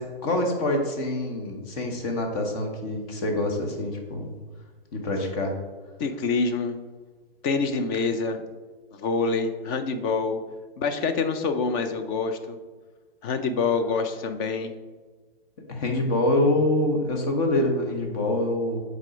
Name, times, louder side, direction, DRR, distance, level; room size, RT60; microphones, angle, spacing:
voice 1, 0.0-4.3 4.9-5.5 15.7-18.8, left 1 dB, 40° left, 3 dB, 1.2 m, -25 dB
voice 2, 6.0-6.8 7.4-8.4 8.9-10.4 10.8-12.6 13.2-14.7, left 4 dB, 25° left, 8 dB, 0.4 m, -26 dB
6.2 x 3.8 x 5.1 m, 1.4 s
hypercardioid pair, 135°, 29 cm